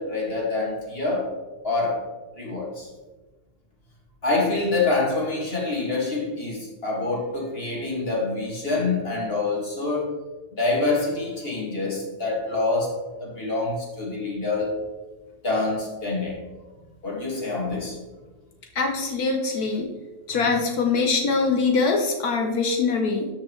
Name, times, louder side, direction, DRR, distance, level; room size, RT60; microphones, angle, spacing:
voice 1, 0.0-1.3 1.6-2.0 2.3-2.9 4.2-10.1 10.6-14.7 15.4-16.4 17.0-18.0, left 3 dB, 35° left, -3 dB, 2.3 m, -26 dB
voice 2, 18.7-19.9 20.3-23.3, left 4 dB, 75° left, 2 dB, 1.5 m, -23 dB
13.0 x 5.2 x 3.2 m, 1.2 s
omnidirectional pair, 1.7 m